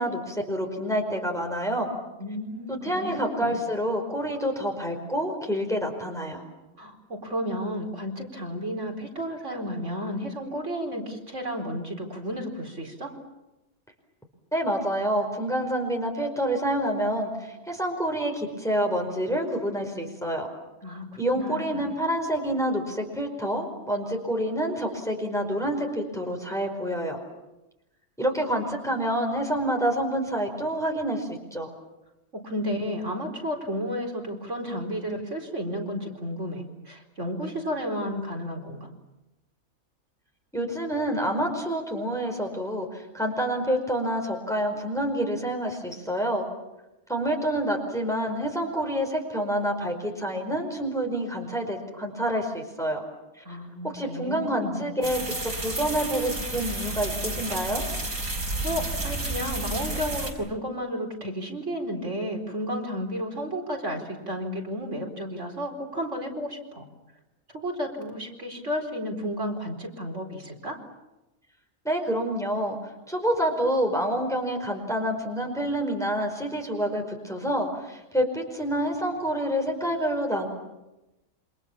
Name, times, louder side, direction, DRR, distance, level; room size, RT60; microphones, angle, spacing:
voice 1, 0.0-1.9 2.7-6.4 14.5-20.5 21.2-27.2 28.2-31.7 40.5-46.5 47.1-53.0 53.8-57.8 71.8-72.8 73.1-80.5, equal, ahead, 2 dB, 5.0 m, -27 dB
voice 2, 2.2-3.6 6.8-13.1 20.8-21.9 32.4-38.9 53.4-54.9 58.6-66.9 67.6-70.8, equal, 55° right, 1 dB, 4.6 m, -32 dB
sound 1, 55.0-60.3, right 2 dB, 85° right, 6.1 m, -31 dB
28.0 x 26.5 x 7.3 m, 0.98 s
omnidirectional pair, 1.5 m